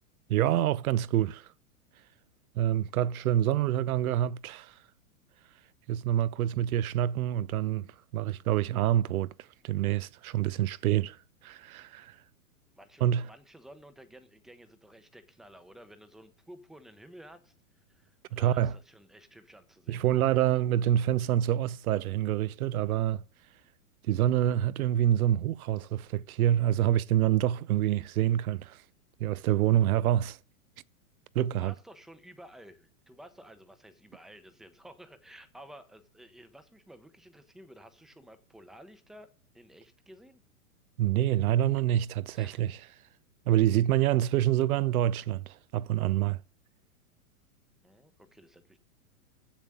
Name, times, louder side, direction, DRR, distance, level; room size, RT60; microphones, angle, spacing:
voice 1, 0.3-1.5 2.6-4.7 5.9-9.3 9.6-11.2 11.4-12.1 13.0-13.2 18.3-18.7 19.9-23.2 24.1-28.8 29.2-30.4 31.3-31.7 41.0-42.8 43.5-46.4, right 12 dB, 80° right, 0.6 m, -26 dB
voice 2, 12.7-20.0 31.4-39.3 39.5-40.4 42.4-42.6 47.8-48.8, right 1 dB, ahead, 0.7 m, -53 dB
7.3 x 7.2 x 6.6 m
hypercardioid pair, 135°, 43 cm